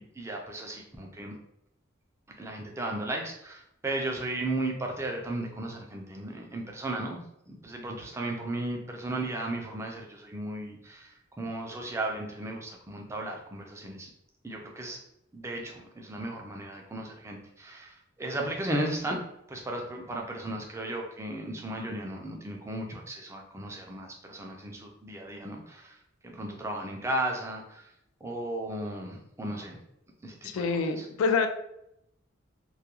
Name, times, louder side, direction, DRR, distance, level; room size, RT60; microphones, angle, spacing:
voice 1, 0.0-1.3 2.4-7.2 7.5-14.1 14.4-15.0 15.3-19.2 19.5-26.0 26.2-27.9 28.2-29.8 30.2-31.1, right 1 dB, 15° right, 1 dB, 0.3 m, -35 dB
voice 2, 30.4-31.5, left 4 dB, 80° left, 7 dB, 0.3 m, -26 dB
2.3 x 2.2 x 2.9 m, 0.79 s
head